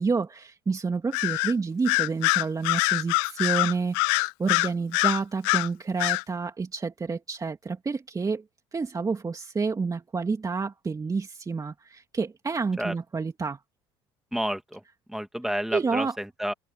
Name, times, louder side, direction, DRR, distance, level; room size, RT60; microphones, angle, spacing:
voice 1, 0.0-8.4 8.7-13.6 15.7-16.2, right 4 dB, 30° right, 2.9 m, -29 dB
Bird vocalization bird call bird song, 1.1-1.5 1.9-5.7 6.0-6.2, left 28 dB, 75° left, 0.5 m, -24 dB
voice 2, 14.3-14.8 15.1-16.5, equal, ahead, 2.7 m, -30 dB
hypercardioid pair, 65°, 13 cm